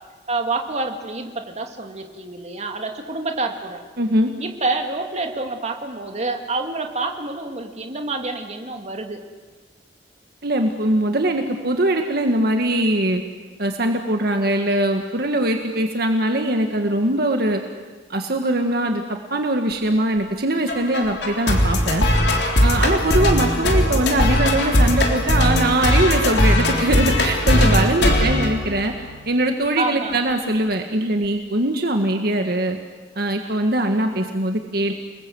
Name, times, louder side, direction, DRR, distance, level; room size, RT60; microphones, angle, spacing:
voice 1, 0.3-3.8 4.4-9.2 22.6-22.8 29.8-30.3, right 3 dB, 40° right, 4 dB, 2.4 m, -27 dB
voice 2, 4.0-4.3 10.4-13.2 13.6-17.6 18.1-19.0 19.3-22.1 22.6-28.9 29.3-32.8 33.1-34.9, right 1 dB, 60° right, 4 dB, 1.7 m, -21 dB
sound 1, 20.7-29.3, left 1 dB, 70° left, 3.6 m, -19 dB
29.0 x 21.0 x 7.9 m, 1.4 s
head